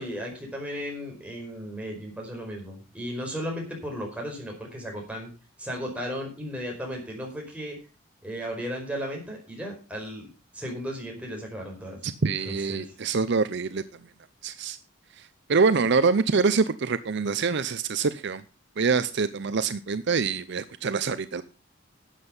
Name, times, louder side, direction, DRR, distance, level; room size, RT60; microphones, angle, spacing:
voice 1, 0.0-5.3 5.6-7.8 8.2-10.3 10.5-12.8, equal, 5° right, -1 dB, 4.9 m, -35 dB
voice 2, 12.0-13.8 14.4-14.8 15.2-18.4 18.8-21.4, right 4 dB, 55° right, 13 dB, 0.6 m, -25 dB
12.0 x 8.0 x 5.5 m, 0.32 s
head